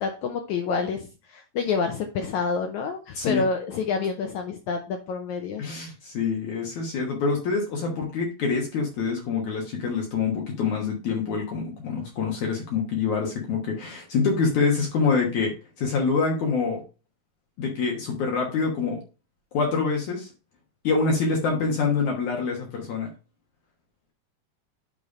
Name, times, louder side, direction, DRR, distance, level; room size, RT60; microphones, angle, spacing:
voice 1, 0.0-5.6, left 5 dB, 80° left, 5 dB, 1.7 m, -28 dB
voice 2, 5.6-15.5 15.8-16.8 17.6-19.0 19.5-20.3 20.8-23.1, left 4 dB, 60° left, 0 dB, 2.5 m, -26 dB
8.7 x 3.3 x 5.3 m, 0.32 s
omnidirectional pair, 4.2 m